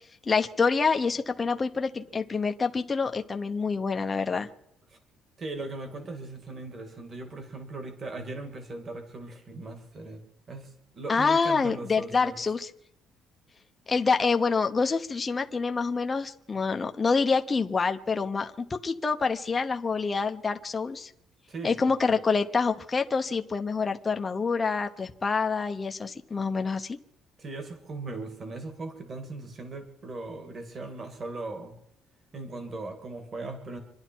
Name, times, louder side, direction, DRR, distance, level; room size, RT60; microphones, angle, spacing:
voice 1, 0.3-4.5 11.1-12.7 13.9-21.1 21.6-27.0, left 4 dB, 20° left, 6 dB, 0.8 m, -27 dB
voice 2, 5.4-12.4 21.5-21.8 27.4-31.8 32.3-33.8, right 2 dB, 30° right, 6 dB, 2.2 m, -39 dB
26.0 x 11.5 x 4.5 m, 0.78 s
cardioid pair, 165°, 0 cm